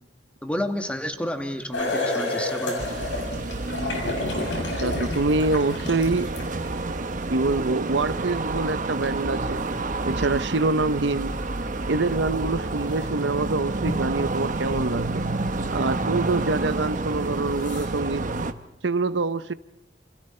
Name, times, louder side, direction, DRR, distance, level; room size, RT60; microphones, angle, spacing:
voice 1, 0.4-2.8, left 1 dB, 5° left, 1.9 m, -30 dB
sound 1, 1.7-7.0 9.0-9.1 12.0-12.1 12.9-13.1 13.8-15.5 15.9-16.0 16.9-17.0 17.5-17.9, left 2 dB, 90° left, 7.2 m, -31 dB
sound 2, 2.8-18.5, right 2 dB, 45° right, 1.1 m, -29 dB
voice 2, 4.6-6.3 7.3-9.6 10.1-11.3 11.9-15.2 15.7-18.3 18.8-19.5, right 3 dB, 80° right, 0.8 m, -25 dB
28.5 x 28.0 x 4.4 m
head